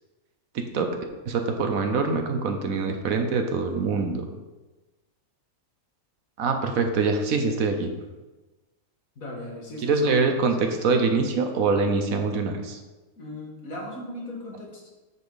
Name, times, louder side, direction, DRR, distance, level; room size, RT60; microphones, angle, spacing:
voice 1, 0.5-0.9 1.3-4.3 6.4-7.9 9.8-12.8, right 4 dB, 70° right, 5 dB, 1.2 m, -24 dB
voice 2, 9.2-10.2 13.2-14.9, left 1 dB, 65° left, -2 dB, 2.2 m, -37 dB
9.5 x 5.2 x 3.9 m, 1.1 s
omnidirectional pair, 1.6 m